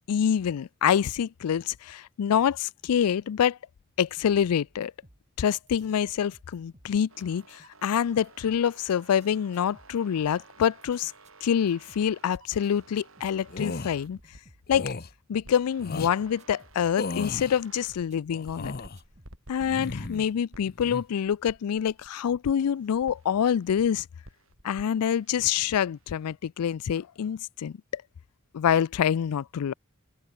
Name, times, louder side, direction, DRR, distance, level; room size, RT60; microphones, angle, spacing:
voice 1, 0.1-3.6 4.0-4.9 5.4-11.1 11.4-14.2 14.7-14.9 15.3-18.7 19.5-24.1 24.6-28.0 28.5-29.7, left 8 dB, 90° left, 0.4 m, -26 dB
sound 1, 4.1-18.6 19.0-20.4, right 1 dB, 30° right, 5.1 m, -59 dB
sound 2, 7.1-14.9 15.4-18.1 18.5-22.1 22.5-23.9 24.2-26.3, right 2 dB, 65° right, 7.9 m, -53 dB
sound 3, 13.5-13.9 14.7-15.1 15.8-16.1 17.0-17.6 18.3-19.0 19.6-20.3 20.6-21.0, left 3 dB, 45° left, 0.8 m, -35 dB
open air
head